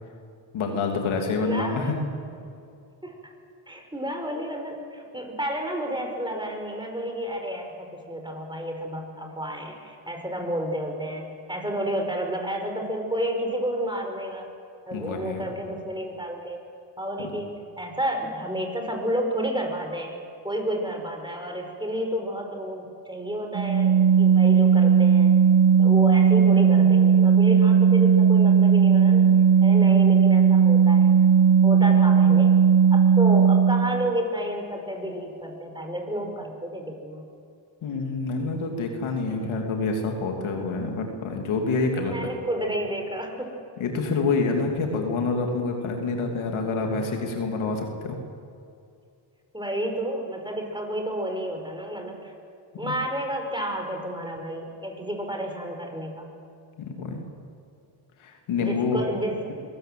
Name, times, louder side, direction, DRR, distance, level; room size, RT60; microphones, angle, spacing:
voice 1, 0.5-2.0 14.9-15.5 17.2-17.3 37.8-42.3 43.8-48.2 52.8-52.9 56.8-57.2 58.2-59.0, left 3 dB, 90° left, 2 dB, 2.9 m, -27 dB
voice 2, 1.4-2.0 3.0-3.3 3.7-14.5 14.9-16.6 17.0-20.2 20.4-25.4 25.8-29.3 29.6-31.2 31.6-32.5 32.9-37.2 41.9-43.6 49.5-52.3 52.8-56.3 58.6-59.5, equal, 10° right, 3 dB, 5.4 m, -31 dB
Organ, 23.5-34.1, right 7 dB, 65° right, 1.6 m, -17 dB
24.0 x 17.0 x 7.7 m, 2.4 s
cardioid pair, 60°, 47 cm